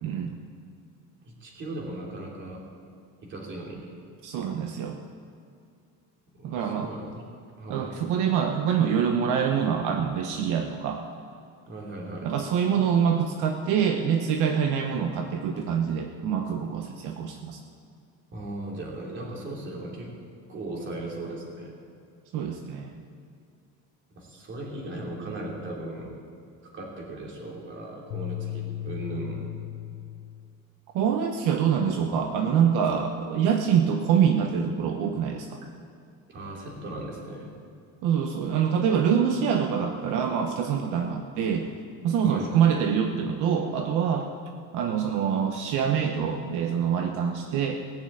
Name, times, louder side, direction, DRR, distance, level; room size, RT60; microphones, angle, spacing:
voice 1, 0.0-0.3 4.2-5.0 6.4-6.9 7.7-11.0 12.2-17.6 22.3-22.9 30.9-35.6 38.0-41.7 42.0-44.3 44.7-47.8, right 7 dB, 75° right, 4 dB, 1.0 m, -25 dB
voice 2, 1.2-2.7 3.2-3.9 6.3-7.2 7.6-7.9 11.7-12.3 18.3-20.1 20.5-21.8 24.1-26.1 26.6-29.4 36.3-37.5 42.2-42.5, right 1 dB, 35° right, -2 dB, 3.1 m, -37 dB
sound 1, 28.1-30.6, left 14 dB, 70° left, 0.8 m, -36 dB
18.5 x 7.2 x 8.6 m, 2.4 s
cardioid pair, 170°, 31 cm